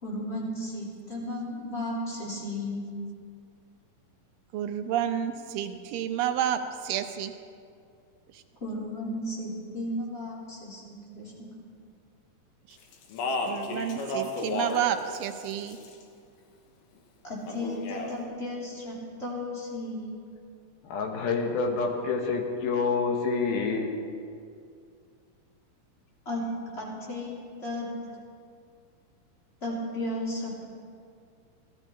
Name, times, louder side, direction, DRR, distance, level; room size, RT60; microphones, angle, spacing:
voice 1, 0.0-2.8 8.6-11.5 17.2-20.1 26.2-26.5 26.7-27.9 29.6-30.5, left 1 dB, 20° left, -5 dB, 3.1 m, -34 dB
voice 2, 4.5-7.3 8.3-8.4 12.7-12.8 13.4-15.8, right 10 dB, 75° right, 7 dB, 2.4 m, -30 dB
Speech, 12.9-14.9 15.2-16.0 17.5-18.1, left 2 dB, 70° left, 2.7 m, -32 dB
voice 3, 20.8-23.9, left 4 dB, 90° left, 2 dB, 3.3 m, -27 dB
18.5 x 12.5 x 4.5 m, 2.3 s
omnidirectional pair, 4.1 m